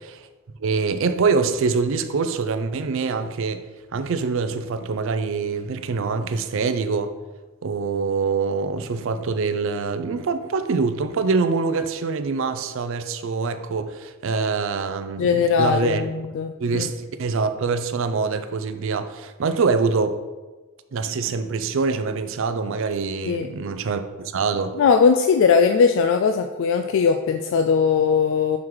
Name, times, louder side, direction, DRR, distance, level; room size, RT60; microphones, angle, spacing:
voice 1, 0.6-3.6 3.9-7.1 7.6-16.0 16.6-16.9 17.2-20.2 20.9-24.8, right 4 dB, 65° right, 0.5 m, -24 dB
voice 2, 15.2-16.9 23.3-23.5 24.8-28.6, left 6 dB, 65° left, 0.3 m, -19 dB
6.1 x 4.7 x 3.7 m
head